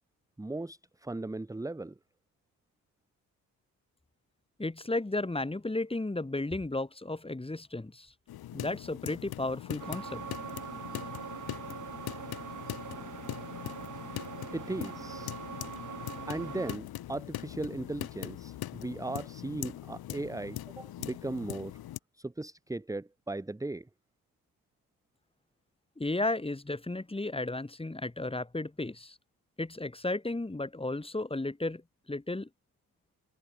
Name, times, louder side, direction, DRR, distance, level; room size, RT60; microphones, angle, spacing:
voice 1, 0.4-1.9 14.5-15.4 16.3-21.7 22.1-23.9, right 2 dB, 10° right, 1.1 m, -37 dB
voice 2, 4.6-8.1 8.5-10.2 26.0-29.2 29.6-31.8 32.1-32.5, left 2 dB, 15° left, 4.5 m, -34 dB
sound 1, 8.3-22.0, left 13 dB, 80° left, 2.8 m, -41 dB
sound 2, 9.8-16.8, right 8 dB, 55° right, 5.0 m, -43 dB
open air
cardioid pair, 80°, 36 cm